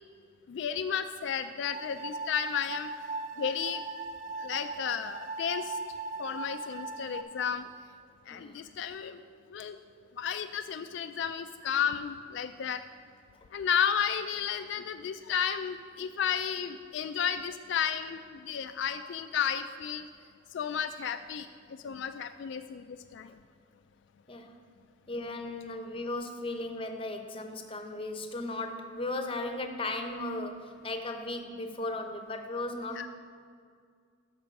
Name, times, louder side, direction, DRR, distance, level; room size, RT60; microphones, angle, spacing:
voice 1, 0.5-2.9 3.4-3.8 4.4-5.8 6.2-7.6 8.3-9.2 9.5-9.8 10.2-12.8 13.5-20.1 20.5-21.5 21.8-22.8 23.1-23.3 33.0-33.1, left 8 dB, 65° left, 9 dB, 0.3 m, -32 dB
sound 1, 1.6-7.2, right 3 dB, 40° right, 0.4 m, -39 dB
voice 2, 25.1-33.1, left 2 dB, 30° left, 6 dB, 0.7 m, -36 dB
12.0 x 6.1 x 5.3 m, 2.2 s
head